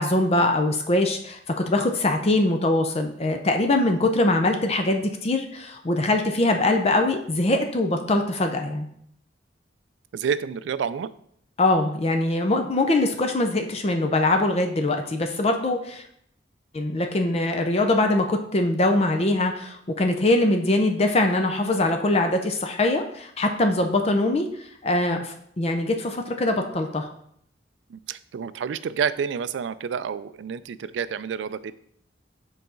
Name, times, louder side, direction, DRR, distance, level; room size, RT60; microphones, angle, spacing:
voice 1, 0.0-8.9 11.6-16.0 16.7-24.5 24.8-27.1, left 2 dB, 35° left, 5 dB, 0.5 m, -22 dB
voice 2, 10.1-11.1 27.9-31.7, right 7 dB, 75° right, 15 dB, 0.3 m, -29 dB
6.9 x 4.1 x 3.8 m, 0.68 s
head